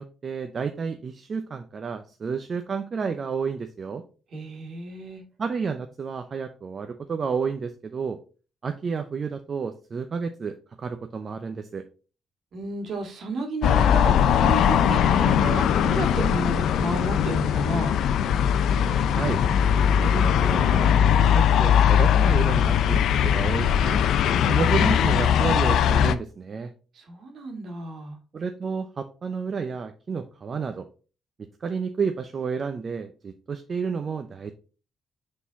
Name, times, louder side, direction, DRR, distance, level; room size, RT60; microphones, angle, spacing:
voice 1, 0.0-4.0 5.4-8.2 8.6-11.8 19.1-19.4 19.9-24.0 24.5-26.7 28.3-30.9 31.4-34.5, right 5 dB, 45° right, 7 dB, 0.6 m, -31 dB
voice 2, 4.3-5.2 12.5-14.1 14.4-17.9 26.9-28.2, right 2 dB, 60° right, 3 dB, 1.9 m, -32 dB
sound 1, 13.6-26.1, left 9 dB, 75° left, 0.4 m, -20 dB
6.1 x 3.9 x 4.0 m, 0.36 s
cardioid pair, 90°, 0 cm